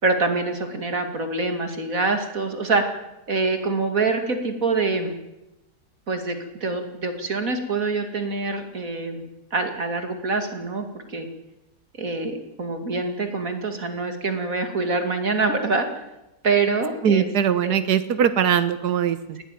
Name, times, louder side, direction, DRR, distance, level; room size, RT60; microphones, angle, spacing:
voice 1, 0.0-2.8 3.3-5.1 6.1-9.2 9.5-11.3 12.0-15.9 16.4-17.3 17.6-17.7, right 3 dB, 55° right, 6 dB, 2.9 m, -25 dB
voice 2, 17.0-19.4, right 8 dB, 85° right, 12 dB, 1.6 m, -21 dB
19.0 x 16.5 x 9.1 m, 0.93 s
omnidirectional pair, 1.7 m